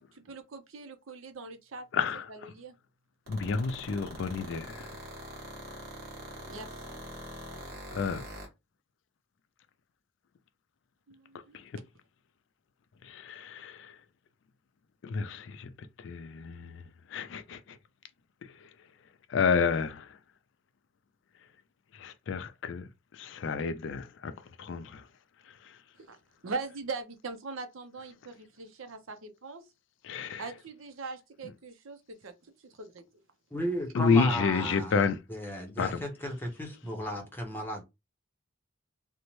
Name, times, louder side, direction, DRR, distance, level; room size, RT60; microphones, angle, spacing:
voice 1, 0.1-2.8 6.5-6.7 11.1-11.6 26.0-26.2 26.4-29.6 30.4-33.0, right 4 dB, 75° right, 0.6 m, -41 dB
voice 2, 1.9-2.2 3.3-4.9 7.9-8.2 11.5-11.7 13.0-14.0 15.0-15.7 16.0-16.8 17.1-17.8 19.3-20.1 21.9-22.9 23.1-24.3 24.6-25.0 25.6-25.7 30.0-30.4 33.9-35.2 35.8-36.0, left 5 dB, 60° left, 0.3 m, -30 dB
sound 1, 3.3-8.5, right 1 dB, 50° right, 1.2 m, -43 dB
voice 3, 33.5-35.0 35.3-37.8, equal, 10° left, 0.7 m, -34 dB
2.6 x 2.1 x 3.0 m
head